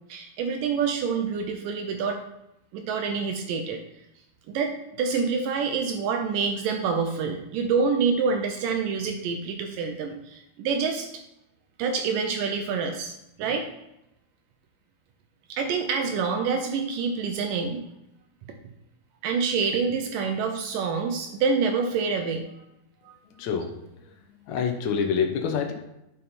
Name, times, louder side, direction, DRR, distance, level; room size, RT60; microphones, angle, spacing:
voice 1, 0.1-2.2 2.7-3.8 4.5-11.2 11.8-13.1 13.4-13.7 15.5-17.8 19.2-22.5 23.1-23.2, right 5 dB, 75° right, 5 dB, 2.1 m, -27 dB
voice 2, 23.4-23.8 24.5-25.7, left 6 dB, 80° left, 3 dB, 1.6 m, -26 dB
10.0 x 5.5 x 4.3 m, 0.87 s
omnidirectional pair, 4.4 m